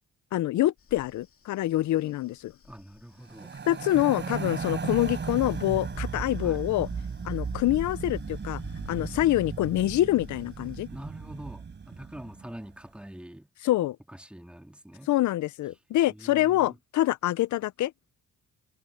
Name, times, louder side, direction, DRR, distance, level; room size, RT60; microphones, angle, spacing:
voice 1, 0.3-2.5 3.7-6.9 7.2-8.6 8.9-10.9 13.6-14.0 15.1-17.9, left 15 dB, 70° left, 0.7 m, -26 dB
sound 1, 0.8-10.9, left 6 dB, 45° left, 3.1 m, -49 dB
voice 2, 2.6-3.5 6.4-6.7 10.9-13.5 14.1-15.1 16.1-16.8, right 1 dB, 5° right, 2.8 m, -44 dB
sound 2, 3.2-12.6, right 5 dB, 40° right, 4.7 m, -36 dB
cardioid pair, 90°, 30 cm